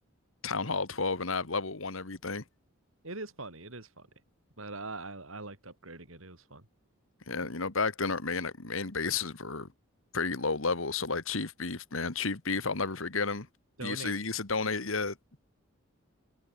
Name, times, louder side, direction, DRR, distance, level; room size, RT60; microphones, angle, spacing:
voice 1, 0.4-2.4 7.3-9.7 10.1-13.5 13.8-15.4, left 4 dB, 75° left, 1.8 m, -32 dB
voice 2, 3.0-4.1 4.6-6.7 7.4-7.5 13.8-14.2, right 2 dB, 75° right, 4.6 m, -42 dB
head